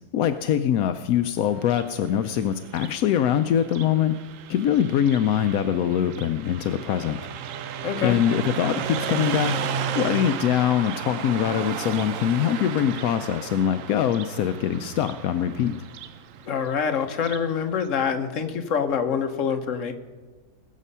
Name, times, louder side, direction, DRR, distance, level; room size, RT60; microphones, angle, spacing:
voice 1, 0.1-4.2 4.5-7.2 8.0-9.5 9.9-15.7, left 10 dB, 85° left, 9 dB, 1.1 m, -23 dB
Car passing by, 1.5-17.5, right 6 dB, 70° right, 1.0 m, -34 dB
voice 2, 7.8-8.2 16.4-19.9, left 7 dB, 65° left, 6 dB, 1.4 m, -25 dB
20.5 x 7.5 x 5.5 m, 1.3 s
omnidirectional pair, 1.5 m